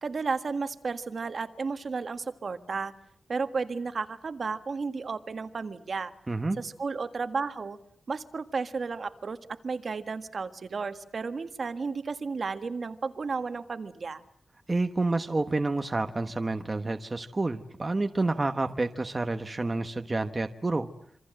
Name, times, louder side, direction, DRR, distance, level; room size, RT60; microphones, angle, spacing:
voice 1, 0.0-2.9 3.3-6.1 6.6-7.8 8.1-9.4 9.6-14.2, right 4 dB, 50° right, 9 dB, 1.6 m, -33 dB
voice 2, 6.3-6.6 14.7-20.9, right 2 dB, 25° right, 6 dB, 1.1 m, -29 dB
27.0 x 25.5 x 7.7 m, 0.67 s
wide cardioid pair, 170°, 0 cm